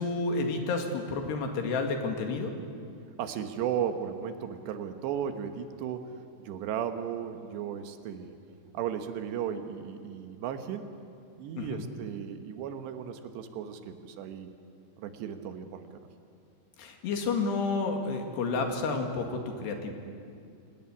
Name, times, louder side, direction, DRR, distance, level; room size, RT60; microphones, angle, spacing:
voice 1, 0.0-2.5 11.6-11.8 16.8-19.9, left 3 dB, 75° left, 4 dB, 4.1 m, -30 dB
voice 2, 3.2-8.4 8.7-10.9 11.4-14.5 15.0-15.9, right 8 dB, 80° right, 7 dB, 3.4 m, -35 dB
26.5 x 18.0 x 9.8 m, 2.4 s
omnidirectional pair, 5.0 m